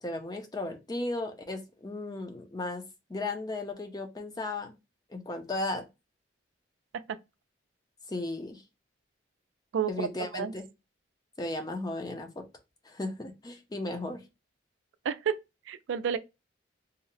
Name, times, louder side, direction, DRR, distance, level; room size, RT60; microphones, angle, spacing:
voice 1, 0.0-4.7 5.1-5.8 8.1-8.6 9.9-10.7 11.4-12.5 12.8-14.2, left 2 dB, 20° left, 0.4 m, -35 dB
voice 2, 9.7-10.5 15.0-15.4 15.7-16.2, right 7 dB, 80° right, 0.3 m, -31 dB
2.7 x 2.1 x 3.9 m
head